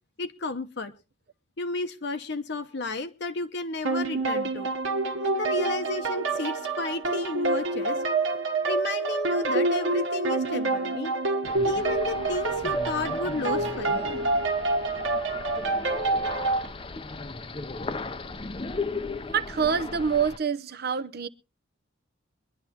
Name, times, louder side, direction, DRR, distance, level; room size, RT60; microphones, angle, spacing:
voice 1, 0.2-0.9 1.6-4.7 5.2-8.0 8.7-11.1 11.4-14.1, left 3 dB, 55° left, 0.8 m, -33 dB
sound 1, 3.8-16.7, right 3 dB, 75° right, 1.5 m, -27 dB
sound 2, 11.5-20.4, left 3 dB, 25° left, 0.6 m, -36 dB
voice 2, 19.3-21.3, right 6 dB, 50° right, 0.7 m, -26 dB
23.5 x 11.0 x 2.8 m
head